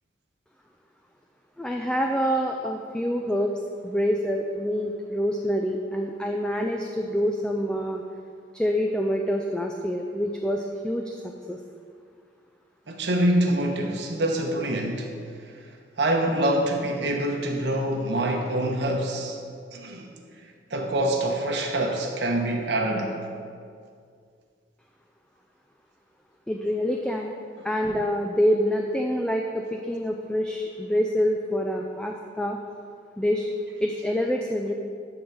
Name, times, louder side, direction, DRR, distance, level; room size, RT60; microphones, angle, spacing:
voice 1, 1.6-3.6 3.8-8.0 8.5-11.1 11.5-11.6 26.5-27.3 27.6-32.6 33.2-33.5 33.8-34.7, equal, 5° left, 2 dB, 0.4 m, -26 dB
voice 2, 12.9-15.1 16.0-19.4 19.7-20.1 20.7-23.2, right 1 dB, 70° right, 1 dB, 1.0 m, -25 dB
11.5 x 3.9 x 7.0 m, 2.2 s
head